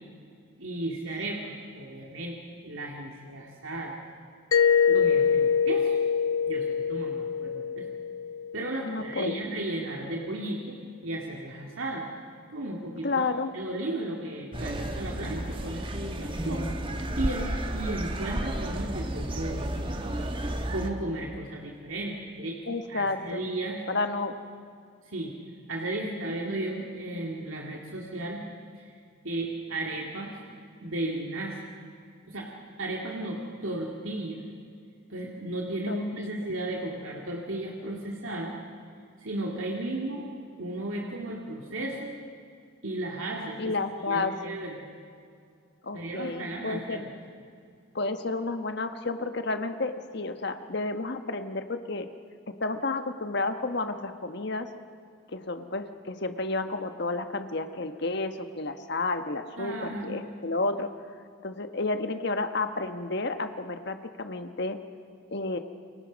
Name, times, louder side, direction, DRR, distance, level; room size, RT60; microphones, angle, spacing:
voice 1, 0.6-4.0 4.9-6.0 6.5-7.9 8.5-12.1 12.5-13.2 13.5-15.9 16.2-16.7 17.2-19.7 20.7-23.8 25.0-25.3 25.7-28.4 28.7-28.9 29.2-30.4 30.8-31.6 32.3-32.5 32.8-34.4 35.1-38.6 39.2-40.3 40.6-42.1 42.8-43.7 44.1-44.9 45.9-47.1 59.6-60.2, right 1 dB, 75° right, -1 dB, 2.3 m, -34 dB
Mallet percussion, 4.5-9.1, left 6 dB, 90° left, 0.5 m, -25 dB
voice 2, 8.8-9.6 13.0-13.5 22.7-23.4 23.9-24.4 35.9-36.3 43.6-44.5 45.8-47.0 47.9-52.1 52.5-54.7 55.3-60.9 61.4-64.8 65.3-65.6, left 3 dB, 55° left, 8 dB, 1.3 m, -31 dB
sound 1, 14.5-20.9, right 1 dB, 25° right, 1.4 m, -32 dB
29.0 x 23.5 x 5.3 m, 2.3 s
head